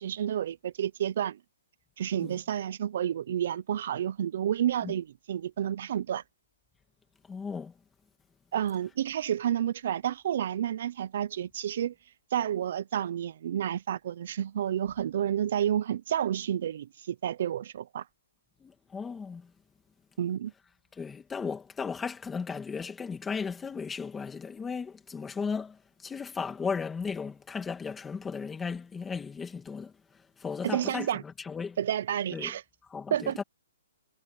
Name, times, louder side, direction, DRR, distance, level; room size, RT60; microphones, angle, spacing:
voice 1, 0.0-1.4 2.0-6.2 8.5-11.9 12.3-18.1 20.2-20.5 30.6-31.2 31.8-32.6 33.1-33.4, right 10 dB, 40° right, 0.5 m, -30 dB
voice 2, 7.3-7.7 18.6-19.5 20.9-31.8 32.3-32.5 32.9-33.4, left 5 dB, 5° left, 2.4 m, -36 dB
hypercardioid pair, 175°, 0 cm